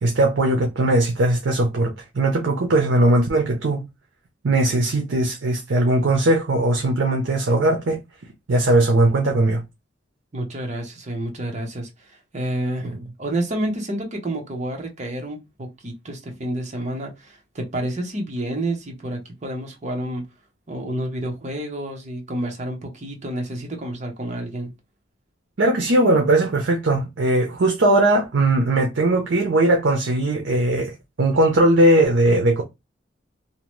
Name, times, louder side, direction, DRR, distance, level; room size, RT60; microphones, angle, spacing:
voice 1, 0.0-3.8 4.4-8.0 8.5-9.6 25.6-32.6, right 1 dB, 70° right, 0.6 m, -19 dB
voice 2, 10.3-20.3 20.7-24.7, right 1 dB, 40° right, 0.8 m, -29 dB
2.7 x 2.1 x 3.0 m
head